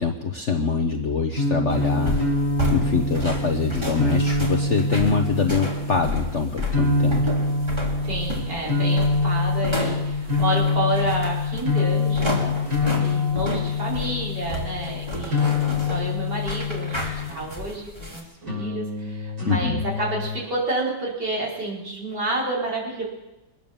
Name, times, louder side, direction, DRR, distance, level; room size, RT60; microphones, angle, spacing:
voice 1, 0.0-2.2 2.7-7.3 19.5-19.8, left 5 dB, 45° left, 2 dB, 1.0 m, -24 dB
sound 1, 1.3-17.6 18.4-20.4, left 3 dB, 40° right, 6.1 m, -25 dB
sound 2, 1.7-18.2, left 1 dB, 15° right, 2.5 m, -32 dB
voice 2, 8.0-12.7 13.0-23.0, right 2 dB, 60° right, -5 dB, 4.9 m, -30 dB
22.0 x 9.4 x 7.0 m, 1.0 s
omnidirectional pair, 2.1 m